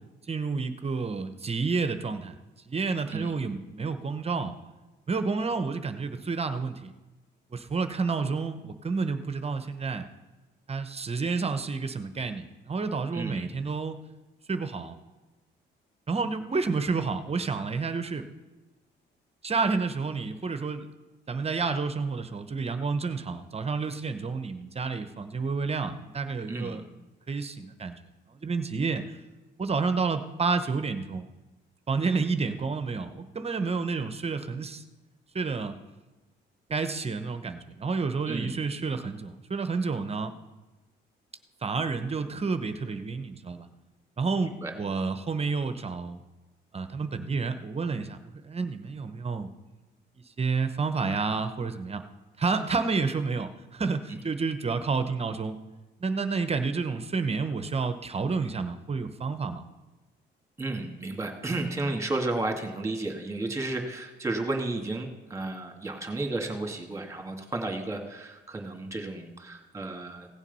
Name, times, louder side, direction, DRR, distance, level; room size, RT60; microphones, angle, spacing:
voice 1, 0.3-2.4 2.7-4.5 5.1-6.9 7.5-10.1 10.7-14.0 14.5-15.0 16.1-18.2 19.4-20.9 21.3-26.8 27.3-28.0 28.3-29.2 29.6-31.3 31.9-34.8 35.3-35.8 36.7-40.3 41.6-43.7 44.2-46.2 46.7-48.2 48.4-49.5 50.4-52.0 52.4-55.6 56.0-59.6, right 4 dB, 30° right, 9 dB, 0.8 m, -30 dB
voice 2, 13.1-13.5 26.5-26.8 38.3-38.5 44.4-44.7 54.1-54.2 60.6-70.3, right 2 dB, 15° right, 3 dB, 2.2 m, -33 dB
16.5 x 7.2 x 5.5 m, 1.1 s
cardioid pair, 90°, 20 cm